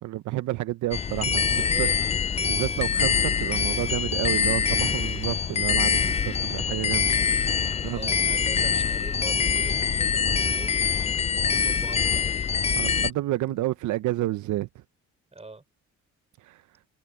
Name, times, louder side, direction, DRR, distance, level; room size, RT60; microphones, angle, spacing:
voice 1, 0.0-1.9 2.5-7.1 7.4-8.1 12.8-14.8 16.4-16.6, right 16 dB, 75° right, 0.6 m, -30 dB
sound 1, 0.9-13.1, left 6 dB, 20° left, 0.3 m, -24 dB
voice 2, 1.5-2.2 7.8-12.5 15.3-15.6, right 3 dB, 20° right, 4.3 m, -44 dB
sound 2, 1.8-8.7, left 7 dB, 50° left, 1.8 m, -48 dB
sound 3, 13.4-14.6, left 11 dB, 70° left, 6.4 m, -53 dB
cardioid pair, 90°, 30 cm